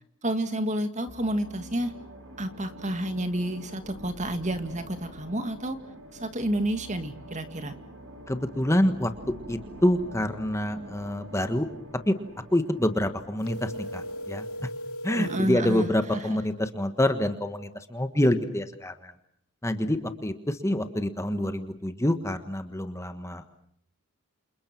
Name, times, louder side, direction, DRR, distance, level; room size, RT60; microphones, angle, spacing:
voice 1, 0.2-1.9 2.4-5.8 6.1-7.7 15.2-16.4, right 1 dB, 35° right, 8 dB, 2.1 m, -30 dB
sound 1, 1.1-14.4, equal, 70° right, 4.7 m, -46 dB
voice 2, 8.3-9.1 9.5-11.7 12.1-12.2 12.5-14.5 15.0-19.1 19.6-23.6, left 1 dB, 15° left, 8 dB, 1.4 m, -27 dB
sound 2, 13.4-15.5, equal, 90° left, 2.5 m, -37 dB
29.0 x 28.0 x 6.1 m, 0.68 s
head